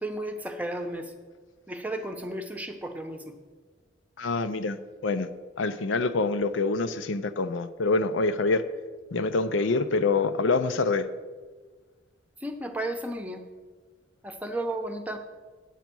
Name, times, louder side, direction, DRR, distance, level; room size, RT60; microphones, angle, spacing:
voice 1, 0.0-1.1 1.7-3.2 12.4-13.4 14.2-15.2, right 1 dB, 10° right, 5 dB, 0.8 m, -33 dB
voice 2, 4.2-5.3 5.6-8.6 9.1-11.1, left 3 dB, 80° left, 10 dB, 0.6 m, -26 dB
9.2 x 8.4 x 6.1 m, 1.4 s
head